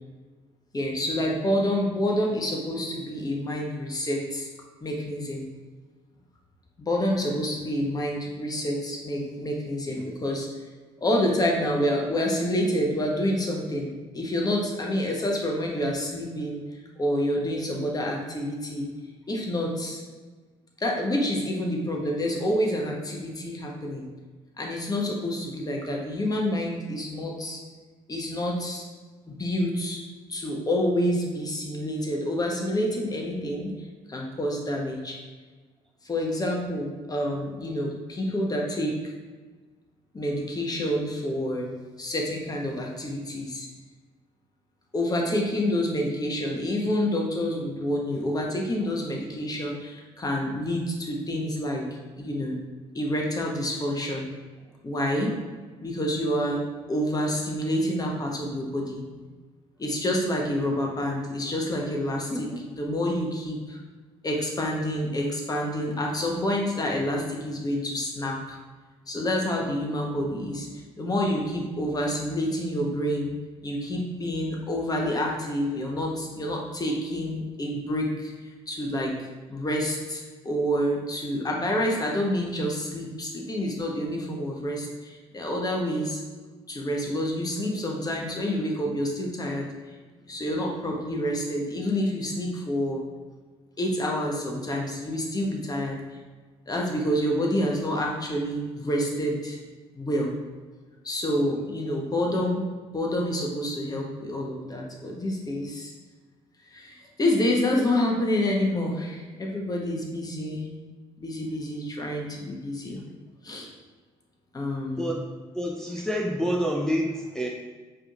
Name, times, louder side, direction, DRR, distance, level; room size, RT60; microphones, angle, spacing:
voice 1, 0.7-4.5 4.8-5.5 6.8-10.5 11.0-16.6 17.0-18.9 19.3-20.0 20.8-24.1 24.6-27.6 28.1-28.8 29.4-30.0 30.3-33.7 34.1-35.2 36.0-39.1 40.1-41.7 42.0-43.7 44.9-51.9 52.2-52.5 52.9-54.3 54.8-55.4 55.8-56.6 56.9-59.3 59.8-62.3 62.8-63.8 64.2-68.6 69.1-70.7 71.0-73.3 73.6-78.3 78.7-79.1 79.5-86.2 86.7-89.7 90.3-93.0 93.8-96.0 96.7-99.6 100.0-100.3 101.0-105.9 106.7-110.7 111.2-113.0 113.4-113.7 114.5-115.1, equal, 25° left, -1 dB, 1.0 m, -28 dB
voice 2, 115.5-117.5, equal, 5° left, -1 dB, 0.5 m, -28 dB
4.8 x 3.1 x 2.5 m, 1.4 s
hypercardioid pair, 55°, 14 cm